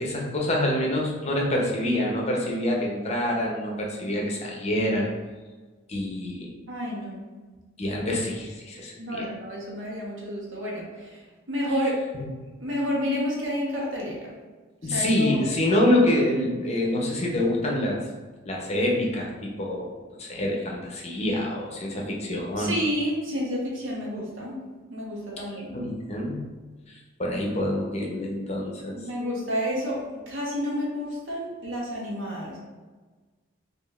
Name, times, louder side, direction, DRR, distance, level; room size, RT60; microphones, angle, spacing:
voice 1, 0.0-5.1 5.9-6.5 7.8-9.3 12.1-12.3 14.8-18.0 18.4-19.9 20.2-22.7 25.7-26.4 26.9-29.0, left 1 dB, 30° left, -1 dB, 0.6 m, -26 dB
voice 2, 6.7-7.2 9.0-11.2 11.5-12.0 12.6-14.3 14.8-15.4 22.6-24.6 24.9-25.8 29.0-32.6, equal, 70° right, -3 dB, 1.0 m, -30 dB
5.0 x 2.4 x 2.4 m, 1.3 s
head